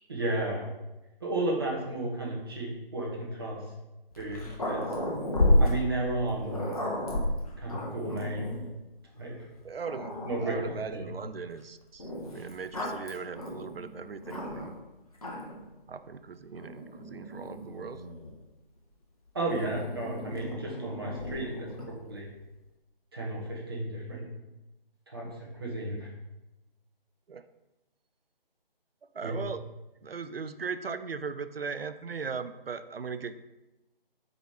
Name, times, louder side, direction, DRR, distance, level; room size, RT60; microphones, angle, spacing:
voice 1, 0.1-0.7 1.2-3.6 4.2-4.9 5.6-6.8 7.6-8.5 9.2-9.3 10.2-11.0 19.3-22.3 23.1-24.3 25.1-26.1 29.2-29.4, right 2 dB, 25° right, -3 dB, 1.0 m, -33 dB
Growling, 4.1-8.7 9.4-9.5 9.8-10.9 12.0-14.8 15.1-15.7 16.6-18.4 19.5-22.0, left 1 dB, 40° left, 1.0 m, -32 dB
voice 2, 9.6-10.1 10.4-14.7 15.9-18.0 27.3-27.5 29.1-29.6 30.0-33.4, right 5 dB, 80° right, 12 dB, 0.4 m, -38 dB
4.9 x 4.9 x 4.2 m, 1.0 s
figure-of-eight pair, 155°, 29 cm